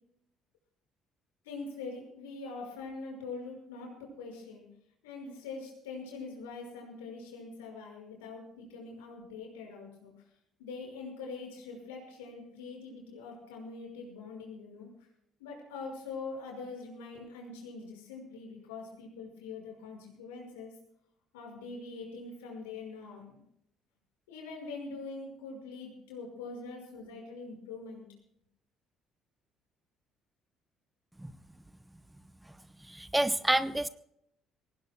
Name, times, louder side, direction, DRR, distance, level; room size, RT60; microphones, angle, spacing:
voice 1, 1.4-4.6 5.0-10.1 10.6-14.9 15.4-20.7 21.3-23.4 24.3-28.1, left 4 dB, 75° left, 0 dB, 5.8 m, -43 dB
voice 2, 32.9-33.9, right 1 dB, 10° right, 14 dB, 0.7 m, -28 dB
24.0 x 18.5 x 2.3 m, 0.74 s
hypercardioid pair, 50°, 0 cm